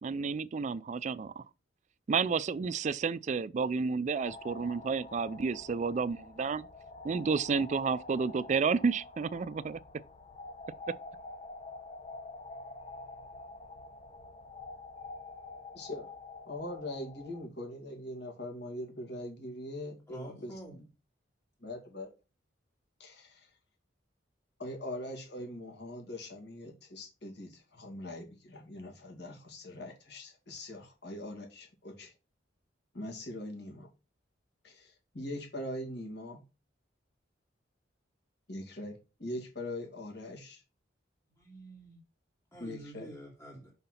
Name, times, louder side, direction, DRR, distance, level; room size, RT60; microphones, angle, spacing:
voice 1, 0.0-1.4 2.1-6.7 7.0-9.8, right 5 dB, 40° right, 0.3 m, -31 dB
sound 1, 4.1-17.5, left 3 dB, 35° left, 0.7 m, -47 dB
voice 2, 16.4-20.8 21.6-22.1 23.0-23.5 24.6-32.1 32.9-33.9 34.6-36.4 38.5-40.6 42.6-43.1, left 1 dB, 60° left, 2.4 m, -42 dB
voice 3, 20.1-20.8 41.4-42.0 42.5-43.7, right 1 dB, 15° left, 2.6 m, -47 dB
5.7 x 3.8 x 5.7 m
head